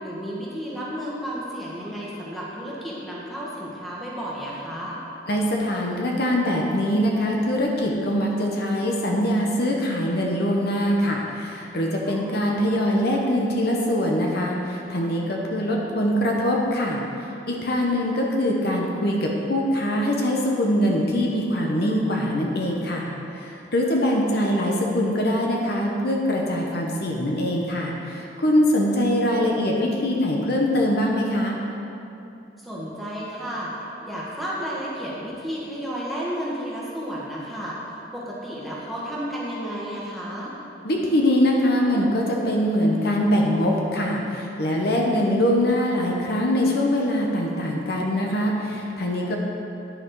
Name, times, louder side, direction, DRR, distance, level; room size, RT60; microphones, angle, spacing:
voice 1, 0.0-5.0 12.0-12.5 24.0-24.2 32.6-33.7 34.0-40.5, equal, ahead, -7 dB, 1.5 m, -32 dB
voice 2, 5.3-17.0 17.5-23.1 23.3-31.6 40.8-49.4, equal, 60° left, -1 dB, 0.9 m, -23 dB
9.8 x 5.7 x 4.7 m, 2.8 s
head